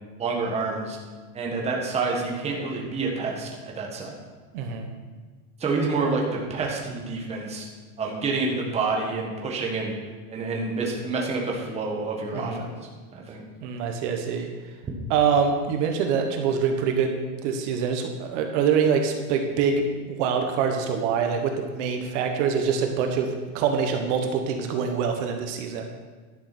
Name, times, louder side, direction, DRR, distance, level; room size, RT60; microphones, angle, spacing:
voice 1, 0.2-1.0 1.3-4.1 5.6-7.7 8.0-9.9 10.3-12.7 13.1-13.4, right 3 dB, 15° right, -1 dB, 1.4 m, -28 dB
voice 2, 4.5-4.9 12.3-12.6 13.6-14.5 15.1-17.2 17.4-25.9, right 6 dB, 50° right, 4 dB, 1.4 m, -25 dB
11.5 x 6.6 x 6.1 m, 1.4 s
supercardioid pair, 160°, 44 cm